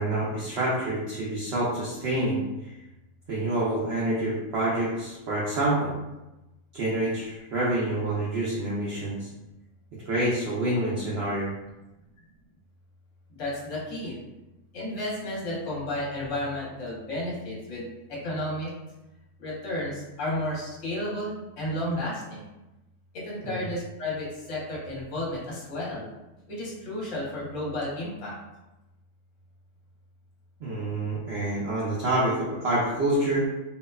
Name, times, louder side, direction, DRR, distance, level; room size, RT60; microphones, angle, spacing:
voice 1, 0.0-2.4 3.3-5.9 6.7-9.3 10.1-11.5 23.4-23.6 30.6-33.5, right 1 dB, 65° right, -7 dB, 0.6 m, -27 dB
voice 2, 13.4-14.2 14.7-18.7 19.4-22.5 23.1-26.1 26.5-28.3, left 1 dB, 60° left, -5 dB, 1.1 m, -32 dB
2.7 x 2.1 x 2.2 m, 0.99 s
omnidirectional pair, 1.7 m